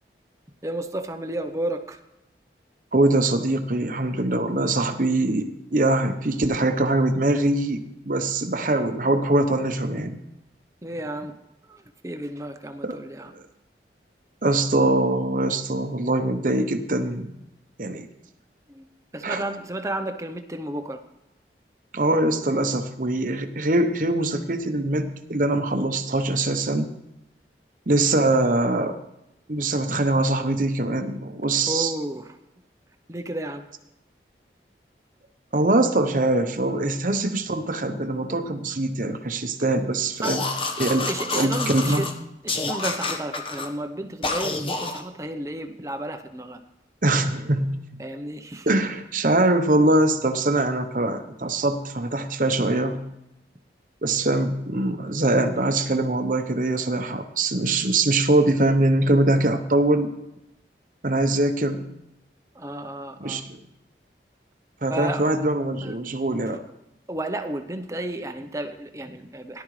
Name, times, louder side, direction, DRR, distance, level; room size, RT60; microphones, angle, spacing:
voice 1, 0.6-2.0 10.8-11.3 11.7-13.3 18.7-18.9 19.1-21.0 28.0-28.3 31.7-32.4 33.1-33.6 40.2-40.3 41.1-42.1 42.4-46.6 48.0-48.7 62.5-63.4 64.9-65.4 65.8-66.0 67.1-69.6, right 1 dB, 15° right, 7 dB, 0.7 m, -32 dB
voice 2, 2.9-10.2 12.8-13.0 13.3-13.4 14.4-17.3 17.8-18.0 19.2-19.4 21.9-26.9 27.9-29.0 29.5-31.9 35.5-40.4 40.8-41.1 41.3-42.0 47.0-48.0 48.7-53.0 54.0-60.1 61.0-61.8 63.2-63.5 64.8-66.6, right 2 dB, 50° right, 8 dB, 0.9 m, -23 dB
sound 1, 40.2-42.1 42.5-43.7 44.2-45.0, left 3 dB, 30° left, 1.1 m, -28 dB
18.0 x 11.5 x 3.2 m, 0.89 s
head